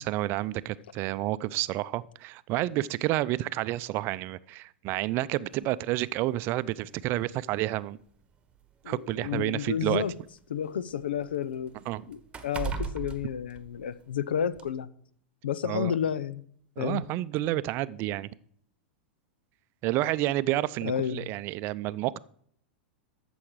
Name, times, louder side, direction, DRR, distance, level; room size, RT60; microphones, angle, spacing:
voice 1, 0.0-8.0 8.9-10.0 11.9-12.0 15.6-15.9 16.8-18.3 19.8-22.2, right 16 dB, 45° right, 0.5 m, -30 dB
sound 1, 5.5-5.7 6.7-6.8 7.3-7.4 8.4-10.3 10.7-14.2 14.6-14.7, right 5 dB, 20° right, 1.4 m, -39 dB
voice 2, 8.8-10.1 10.5-11.7 12.1-14.9 15.4-16.4 16.8-17.0 20.8-21.3, left 9 dB, 75° left, 0.7 m, -31 dB
13.0 x 7.1 x 4.8 m
hypercardioid pair, 100°, 5 cm